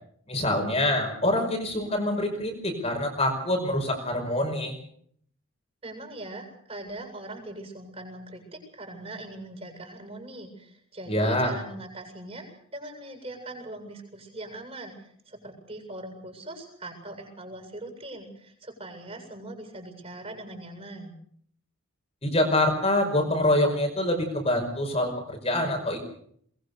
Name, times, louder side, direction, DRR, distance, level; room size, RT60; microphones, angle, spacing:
voice 1, 0.3-4.8 11.1-11.5 22.2-26.0, left 1 dB, 30° left, 2 dB, 5.3 m, -25 dB
voice 2, 5.8-21.2, right 1 dB, 30° right, 4 dB, 7.6 m, -41 dB
22.5 x 21.5 x 6.7 m, 0.63 s
head